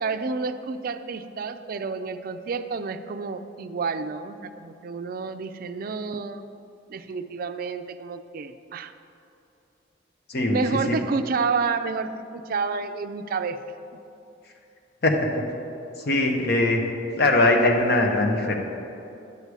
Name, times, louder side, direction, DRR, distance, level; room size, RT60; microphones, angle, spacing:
voice 1, 0.0-6.4 6.9-8.9 10.5-13.6, right 4 dB, 50° right, 9 dB, 0.4 m, -29 dB
voice 2, 15.0-15.4 16.0-16.8 17.2-18.5, left 2 dB, 60° left, 3 dB, 1.0 m, -21 dB
9.6 x 6.7 x 4.8 m, 2.7 s
head